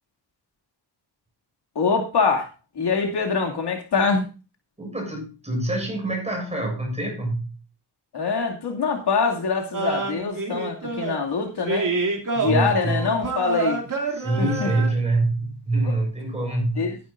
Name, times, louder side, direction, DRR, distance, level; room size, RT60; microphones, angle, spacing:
voice 1, 1.7-2.5 2.8-4.2 8.1-11.9 12.3-13.8 14.4-14.7 15.8-15.9 16.8-16.9, left 5 dB, 70° left, 2 dB, 2.7 m, -24 dB
voice 2, 4.8-7.5 12.4-13.0 14.1-16.9, right 2 dB, 15° right, 1 dB, 7.2 m, -25 dB
sound 1, 9.7-11.2 11.6-14.9, right 3 dB, 50° right, 3.1 m, -27 dB
13.5 x 11.5 x 2.6 m, 0.31 s
wide cardioid pair, 125°, 41 cm